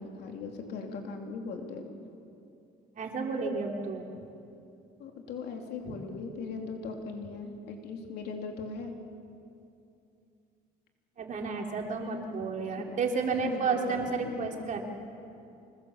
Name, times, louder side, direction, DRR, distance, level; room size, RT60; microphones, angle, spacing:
voice 1, 0.0-1.9 5.0-8.9 12.6-12.9 13.4-14.4, left 4 dB, 75° left, 3 dB, 3.3 m, -39 dB
voice 2, 3.0-4.1 5.9-6.0 11.2-14.8, right 4 dB, 50° right, 1 dB, 3.5 m, -31 dB
25.5 x 21.0 x 7.3 m, 2.6 s
cardioid pair, 110°, 17 cm